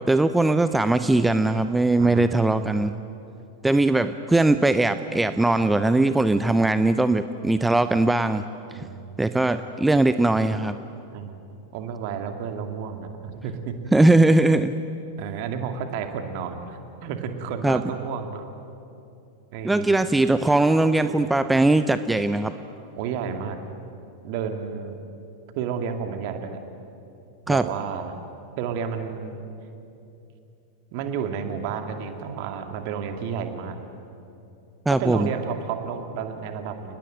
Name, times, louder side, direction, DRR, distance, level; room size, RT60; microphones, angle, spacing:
voice 1, 0.1-2.9 3.6-8.4 9.2-10.7 13.9-14.7 17.6-17.8 19.6-22.5 27.5-27.6 34.9-35.3, right 2 dB, 5° right, 11 dB, 0.7 m, -20 dB
voice 2, 2.0-3.2 8.7-9.2 11.1-11.4 11.7-13.7 15.2-18.4 19.5-20.1 23.0-23.6 24.2-25.0 25.6-26.6 27.5-28.1 28.6-29.4 30.9-33.8 34.9-37.0, right 7 dB, 45° right, 6 dB, 2.4 m, -31 dB
29.5 x 20.0 x 7.8 m, 2.7 s
figure-of-eight pair, 90°, 0 cm